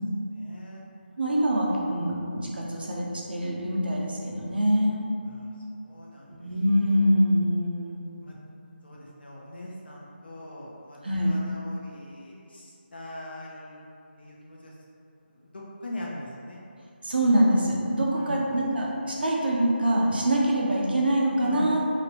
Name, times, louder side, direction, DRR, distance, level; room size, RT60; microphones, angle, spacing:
voice 1, 0.2-0.8 5.2-6.5 8.2-8.4 8.8-13.8 14.2-14.7 15.3-16.6 18.1-18.4 21.4-21.8, left 1 dB, 65° left, -4 dB, 0.8 m, -41 dB
voice 2, 1.2-5.0 6.4-8.1 11.0-11.4 17.0-21.8, equal, 65° right, -3 dB, 0.7 m, -24 dB
3.3 x 2.9 x 2.9 m, 2.6 s
figure-of-eight pair, 165°, 6 cm